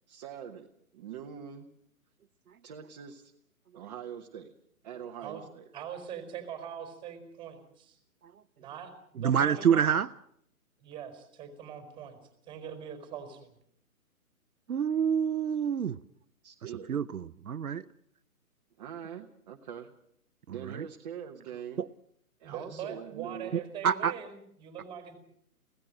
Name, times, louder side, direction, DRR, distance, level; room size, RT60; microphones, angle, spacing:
voice 1, 0.1-1.7 2.6-3.3 3.7-4.5 4.8-5.7 16.4-16.9 18.8-19.9 20.5-21.9 22.4-23.5, right 8 dB, 30° right, 1.2 m, -43 dB
voice 2, 5.7-8.0 8.6-10.0 10.8-12.2 12.5-13.5 22.4-25.2, right 8 dB, 10° right, 4.5 m, -42 dB
voice 3, 9.2-10.1 14.7-16.0 16.9-17.8 20.6-20.8 21.8-21.9 23.8-24.1, right 8 dB, 70° right, 0.9 m, -27 dB
24.5 x 17.0 x 7.6 m
hypercardioid pair, 145°, 44 cm